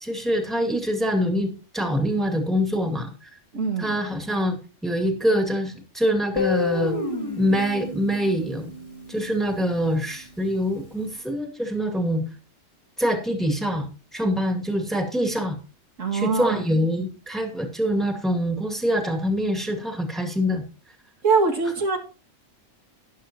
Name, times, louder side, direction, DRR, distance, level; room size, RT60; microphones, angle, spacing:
voice 1, 0.0-3.1 3.8-7.0 7.4-8.7 9.1-12.2 13.0-15.6 16.1-20.6, equal, ahead, 4 dB, 2.2 m, -25 dB
voice 2, 3.5-3.9 16.0-16.6 21.2-22.0, right 4 dB, 75° right, 3 dB, 2.4 m, -22 dB
Guitar, 6.3-9.3, left 3 dB, 25° left, 2.1 m, -29 dB
12.5 x 11.0 x 2.9 m, 0.32 s
omnidirectional pair, 1.3 m